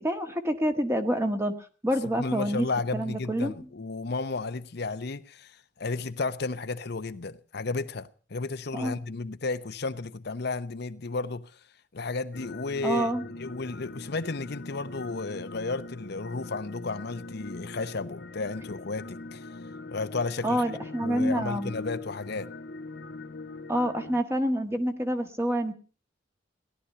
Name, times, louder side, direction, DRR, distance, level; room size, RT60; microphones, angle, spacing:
voice 1, 0.0-1.5 1.8-2.7 2.9-3.5 8.7-8.9 12.8-13.2 20.4-21.8 23.7-25.7, equal, 15° right, 1.6 m, -27 dB
voice 2, 2.2-11.6 11.9-13.1 13.4-19.5 19.9-20.6 21.0-22.5, left 3 dB, 60° left, 0.8 m, -33 dB
sound 1, 12.3-24.2, left 2 dB, 90° left, 1.4 m, -42 dB
17.5 x 11.5 x 6.7 m
head